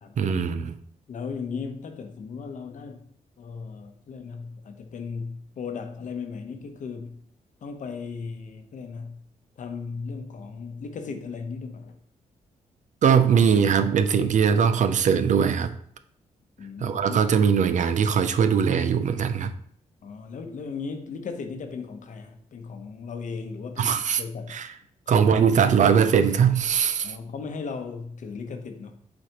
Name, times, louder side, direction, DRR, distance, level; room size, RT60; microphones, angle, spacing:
voice 1, 0.2-0.7 13.0-15.7 16.8-19.5 23.8-24.2 24.5-24.7 25.1-27.1, right 7 dB, 60° right, 10 dB, 0.5 m, -21 dB
voice 2, 1.1-3.1 3.4-7.2 7.6-9.2 9.6-12.0 16.6-17.3 20.0-24.5 27.0-29.0, left 5 dB, 65° left, 6 dB, 0.9 m, -36 dB
7.8 x 4.2 x 2.9 m, 0.63 s
cardioid pair, 105°, 14 cm